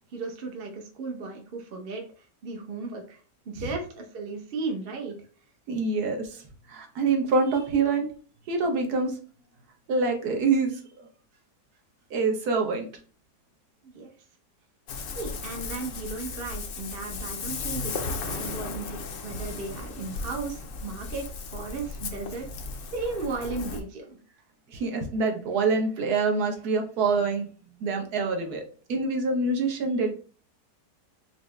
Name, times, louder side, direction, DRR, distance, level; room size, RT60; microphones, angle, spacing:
voice 1, 0.1-5.2 13.8-14.1 15.2-21.3 21.5-24.2, right 3 dB, 50° right, 2 dB, 0.7 m, -35 dB
voice 2, 5.7-6.4 6.7-8.1 8.5-9.1 9.9-10.8 12.1-12.9 24.7-27.5 27.8-28.6 28.9-30.1, right 4 dB, 70° right, 3 dB, 1.2 m, -25 dB
Ocean, 14.9-23.8, left 4 dB, 65° left, 0.8 m, -36 dB
4.7 x 2.0 x 3.1 m, 0.40 s
omnidirectional pair, 1.8 m